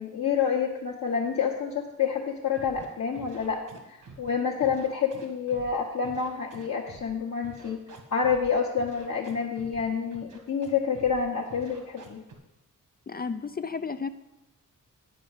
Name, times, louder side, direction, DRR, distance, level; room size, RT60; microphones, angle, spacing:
voice 1, 0.0-3.6 3.9-7.8 8.1-12.2, left 6 dB, 55° left, -3 dB, 1.1 m, -28 dB
Scratching (performance technique), 2.5-2.9 3.1-4.3 4.6-5.7 6.0-7.1 7.4-8.5 8.8-9.8 10.1-10.7 10.9-11.2 11.5-12.3, right 3 dB, 65° right, 1.7 m, -47 dB
voice 2, 13.1-14.1, left 5 dB, 30° left, 11 dB, 0.4 m, -32 dB
10.0 x 5.1 x 8.1 m, 0.92 s
wide cardioid pair, 170°, 33 cm